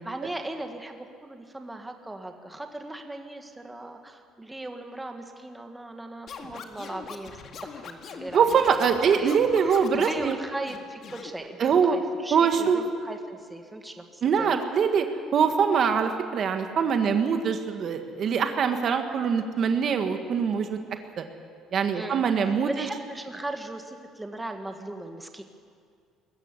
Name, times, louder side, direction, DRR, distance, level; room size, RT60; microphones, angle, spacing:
voice 1, 0.0-8.8 9.2-14.6 21.9-25.4, right 1 dB, 10° right, 5 dB, 1.7 m, -38 dB
Scratching (performance technique), 6.3-10.3 10.7-11.3, left 6 dB, 50° left, 1.9 m, -41 dB
voice 2, 8.3-10.4 11.6-12.0 12.3-12.8 14.2-15.1 15.3-20.8 21.7-22.9, right 6 dB, 50° right, 6 dB, 1.6 m, -23 dB
21.0 x 14.0 x 9.7 m, 2.2 s
cardioid pair, 115°, 0 cm